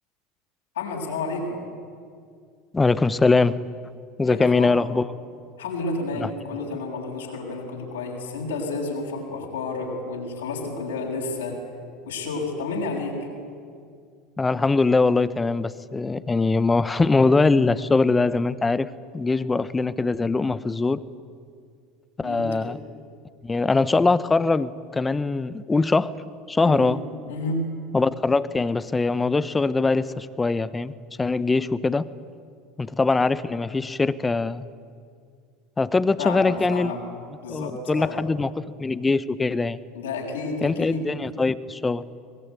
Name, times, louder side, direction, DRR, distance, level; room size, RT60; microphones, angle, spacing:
voice 1, 0.8-1.6 4.2-4.8 5.6-11.6 12.1-13.3 22.2-22.7 23.5-23.6 26.6-26.9 27.3-27.6 36.2-37.0 37.4-38.3 39.9-41.1, left 3 dB, 75° left, -1 dB, 7.3 m, -31 dB
voice 2, 2.7-3.6 4.2-5.1 6.2-6.3 14.4-21.0 22.2-22.8 23.4-26.1 26.5-27.0 27.9-30.9 31.2-32.1 32.8-34.7 35.8-36.9 37.5-38.5 38.8-39.8 40.6-42.0, left 3 dB, 15° left, 15 dB, 1.1 m, -22 dB
23.5 x 21.5 x 9.5 m, 2.2 s
figure-of-eight pair, 75°, 0 cm